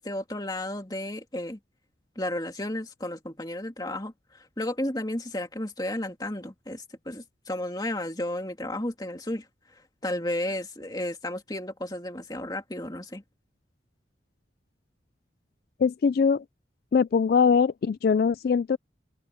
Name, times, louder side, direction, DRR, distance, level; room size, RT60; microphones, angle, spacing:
voice 1, 0.0-1.6 2.2-9.5 10.0-13.2, left 1 dB, 20° left, 2.5 m, -33 dB
voice 2, 15.8-16.4 16.9-18.8, left 6 dB, 55° left, 0.3 m, -22 dB
head